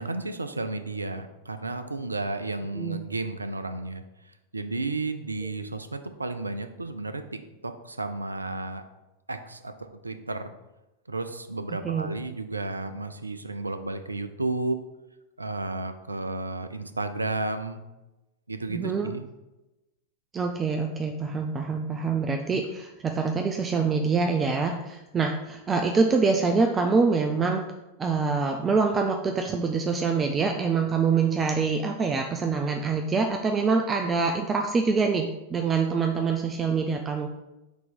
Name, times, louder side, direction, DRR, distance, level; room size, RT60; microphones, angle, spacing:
voice 1, 0.0-8.8 9.3-10.5 11.1-14.8 15.4-17.8 18.5-19.2, right 2 dB, 80° right, 9 dB, 0.5 m, -33 dB
voice 2, 11.7-12.1 18.7-19.1 20.3-27.6 28.0-37.3, right 4 dB, 20° right, 3 dB, 0.5 m, -25 dB
6.1 x 3.0 x 5.2 m, 1.0 s
figure-of-eight pair, 90°, 0 cm